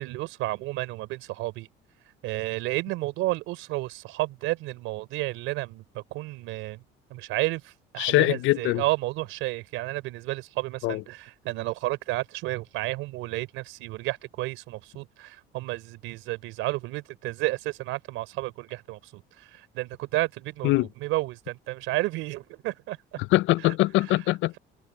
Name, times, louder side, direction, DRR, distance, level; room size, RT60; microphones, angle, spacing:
voice 1, 0.0-1.7 2.2-6.8 7.1-23.2, right 19 dB, 80° right, 3.9 m, -31 dB
voice 2, 8.0-8.8 10.8-11.0 20.6-20.9 23.2-24.6, left 19 dB, 70° left, 0.4 m, -23 dB
cardioid pair, 100°, 21 cm